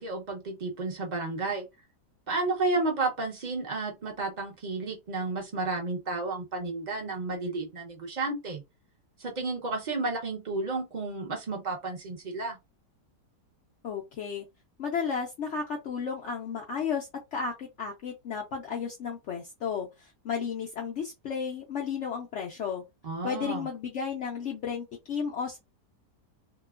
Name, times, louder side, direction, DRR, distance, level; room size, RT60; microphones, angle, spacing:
voice 1, 0.0-1.7 2.3-8.6 9.2-12.6 23.0-23.7, right 3 dB, 40° right, 0.6 m, -32 dB
voice 2, 13.8-14.5 14.8-22.8 23.2-25.6, left 6 dB, 70° left, 0.6 m, -33 dB
2.8 x 2.2 x 2.3 m
omnidirectional pair, 1.8 m